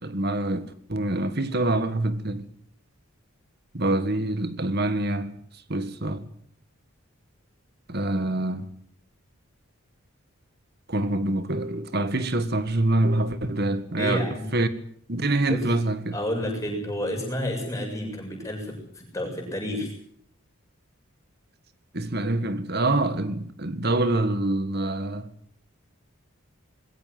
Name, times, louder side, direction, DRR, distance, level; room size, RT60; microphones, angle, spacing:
voice 1, 0.0-2.5 3.7-5.3 5.7-6.3 7.9-8.7 10.9-14.3 14.5-14.7 15.1-16.1 21.9-25.3, right 2 dB, 45° right, 1.8 m, -25 dB
voice 2, 14.0-14.5 15.5-15.7 16.1-19.9, left 1 dB, 15° left, 7.2 m, -30 dB
21.5 x 17.0 x 9.6 m
head